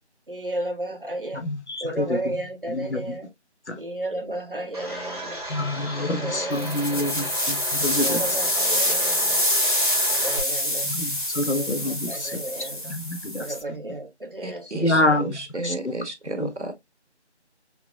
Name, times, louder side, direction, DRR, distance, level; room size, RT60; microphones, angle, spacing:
voice 1, 0.3-1.4 1.8-3.3 3.8-5.4 6.0-7.2 8.0-9.5 10.0-10.9 11.3-12.9 13.3-15.2, right 1 dB, 50° right, 1.0 m, -33 dB
voice 2, 1.5-2.0 2.7-3.0 3.7-3.8 5.5-8.2 10.9-12.4 12.9-13.4 14.7-15.3 15.6-15.7 16.4-16.5, left 1 dB, 70° left, 1.1 m, -26 dB
Domestic sounds home sounds, 4.7-10.4, right 1 dB, 35° right, 2.0 m, -35 dB
sound 1, 6.5-13.6, left 1 dB, 45° left, 1.6 m, -25 dB
voice 3, 8.1-8.5 10.0-10.1 12.3-12.4 14.4-16.7, right 2 dB, 75° right, 1.2 m, -34 dB
5.7 x 2.7 x 2.3 m
figure-of-eight pair, 180°, 35 cm